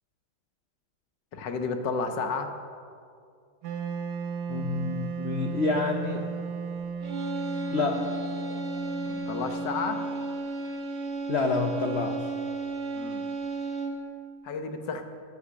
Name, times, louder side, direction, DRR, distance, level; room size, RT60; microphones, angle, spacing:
voice 1, 1.3-2.5 9.1-10.0 12.9-13.3 14.4-15.0, left 4 dB, 65° left, 6 dB, 1.6 m, -32 dB
Wind instrument woodwind instrument, 3.6-10.6, right 6 dB, 60° right, 1.2 m, -36 dB
voice 2, 4.5-6.3 7.7-8.1 11.3-12.3, left 3 dB, 80° left, 4 dB, 0.5 m, -28 dB
sound 1, 7.0-14.2, right 2 dB, 40° right, 1.2 m, -33 dB
14.5 x 8.7 x 6.4 m, 2.3 s
omnidirectional pair, 2.2 m